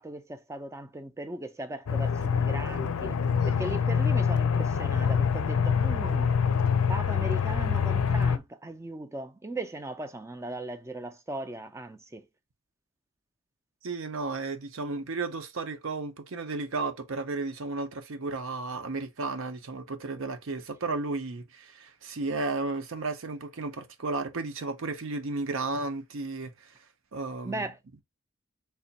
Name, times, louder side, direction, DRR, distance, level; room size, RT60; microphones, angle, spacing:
voice 1, 0.0-3.2 3.5-6.3 6.9-12.3 27.4-28.0, right 2 dB, 15° right, 0.4 m, -38 dB
Aircraft, 1.9-8.4, left 6 dB, 90° left, 0.5 m, -25 dB
voice 2, 13.8-26.7 27.1-27.7, right 3 dB, 70° right, 0.6 m, -33 dB
3.4 x 2.4 x 4.0 m
head